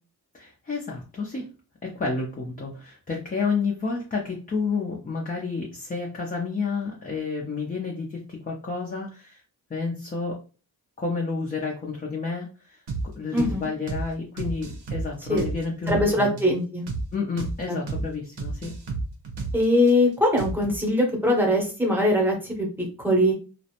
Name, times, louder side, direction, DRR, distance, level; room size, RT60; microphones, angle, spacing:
voice 1, 0.3-1.5 1.8-9.4 9.7-10.4 11.0-12.8 13.1-16.4 17.1-18.7, left 4 dB, 25° left, -2 dB, 0.4 m, -30 dB
sound 1, 12.9-13.1 13.4-13.6 13.9-14.1 14.4-16.1 16.4-16.5 16.9-17.1 17.4-17.6 17.9-18.1 18.4-19.9 20.4-20.8, right 3 dB, 85° right, 0.7 m, -31 dB
voice 2, 13.3-13.7 15.3-15.4 15.9-16.8 19.5-22.7 23.0-23.3, left 1 dB, 5° right, 0 dB, 0.7 m, -21 dB
2.4 x 2.0 x 2.8 m, 0.34 s
wide cardioid pair, 155°, 39 cm